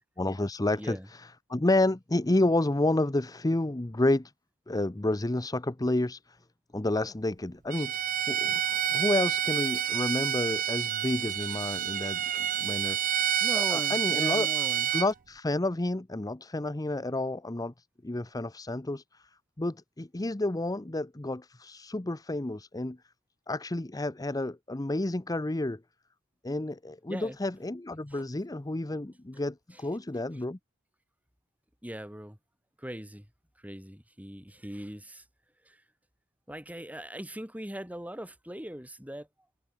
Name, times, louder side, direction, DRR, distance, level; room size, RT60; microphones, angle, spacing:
voice 1, 0.2-4.3 4.7-6.2 6.7-12.2 12.6-13.0 13.5-14.5 14.9-17.7 18.0-19.2 19.6-23.0 23.5-25.8 26.4-30.6, left 2 dB, 15° left, 0.7 m, -30 dB
voice 2, 0.8-1.1 13.4-14.9 27.1-27.4 28.1-28.2 29.3-29.4 29.7-29.8 30.3-30.4 31.8-32.4 32.8-33.3 33.6-35.2 35.6-35.8 36.5-39.3, equal, 5° right, 3.9 m, -40 dB
Bowed string instrument, 7.7-15.1, right 10 dB, 40° right, 0.5 m, -29 dB
head